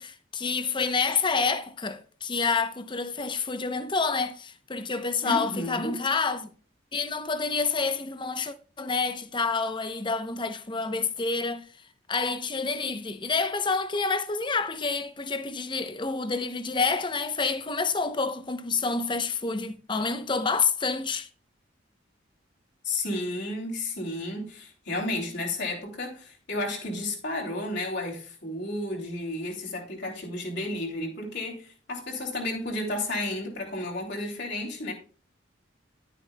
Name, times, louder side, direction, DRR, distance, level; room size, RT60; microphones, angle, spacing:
voice 1, 0.0-6.5 6.9-11.6 12.1-21.3, left 4 dB, 25° left, 0.8 m, -28 dB
voice 2, 5.2-6.0 22.8-34.9, left 2 dB, 60° left, 2.8 m, -32 dB
11.0 x 10.0 x 2.3 m
head